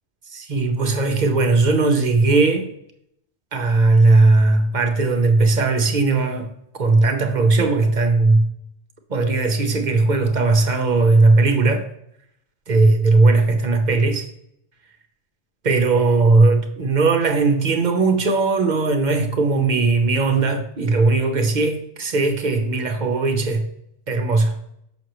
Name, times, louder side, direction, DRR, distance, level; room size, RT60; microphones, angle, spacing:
voice 1, 0.3-2.7 3.5-8.4 9.1-11.9 12.7-14.2 15.6-23.7 24.1-24.6, right 3 dB, 45° right, 0.8 m, -18 dB
6.2 x 6.0 x 3.0 m
omnidirectional pair, 1.2 m